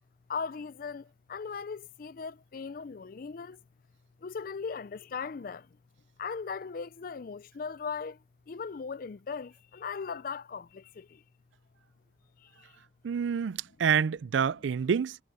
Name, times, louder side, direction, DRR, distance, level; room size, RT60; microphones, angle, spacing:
voice 1, 0.3-3.6 4.2-5.7 6.2-11.2 12.4-12.8, left 5 dB, 50° left, 0.4 m, -38 dB
voice 2, 13.0-15.2, right 7 dB, 80° right, 0.4 m, -27 dB
head